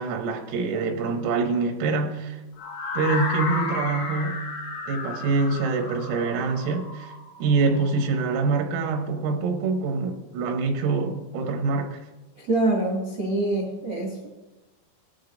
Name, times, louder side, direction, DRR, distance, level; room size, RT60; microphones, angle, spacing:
voice 1, 0.0-2.4 3.0-4.4 4.9-7.1 7.4-12.0, right 4 dB, 85° right, 3.8 m, -25 dB
sound 1, 2.6-8.5, left 3 dB, 80° left, 4.3 m, -33 dB
voice 2, 12.5-14.3, right 2 dB, 45° right, 1.4 m, -25 dB
19.0 x 11.5 x 2.6 m
omnidirectional pair, 5.8 m